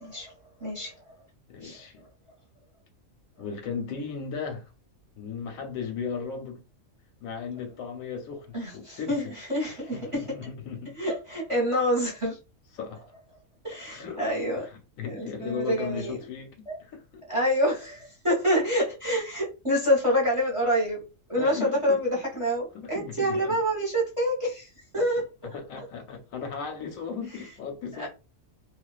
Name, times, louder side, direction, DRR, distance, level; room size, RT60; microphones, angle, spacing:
voice 1, 0.0-0.3 0.6-0.9 1.6-1.8 8.5-10.2 11.0-12.4 13.6-14.6 15.0-16.1 16.7-16.8 17.3-21.0 21.3-25.2 28.0-28.1, equal, 30° right, 0.8 m, -27 dB
voice 2, 1.5-2.1 3.4-4.7 5.2-6.6 7.2-9.3 9.9-11.0 12.7-13.1 13.9-14.3 14.6-17.2 21.4-22.0 22.7-23.6 25.4-28.1, left 6 dB, 90° left, 1.1 m, -36 dB
2.4 x 2.3 x 2.3 m
omnidirectional pair, 1.4 m